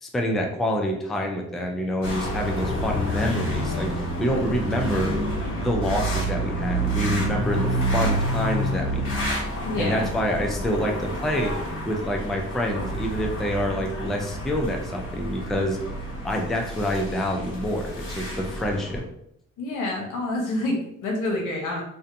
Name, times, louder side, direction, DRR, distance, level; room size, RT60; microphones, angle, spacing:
voice 1, 0.0-5.2 5.6-9.3 9.8-11.5 11.9-15.8 16.2-19.0, equal, ahead, 2 dB, 0.3 m, -27 dB
sound 1, 2.0-19.0, right 1 dB, 45° left, 1.1 m, -29 dB
voice 2, 9.6-10.1 19.6-21.8, left 2 dB, 80° left, 0 dB, 0.8 m, -27 dB
2.6 x 2.2 x 2.5 m, 0.77 s
cardioid pair, 90°, 30 cm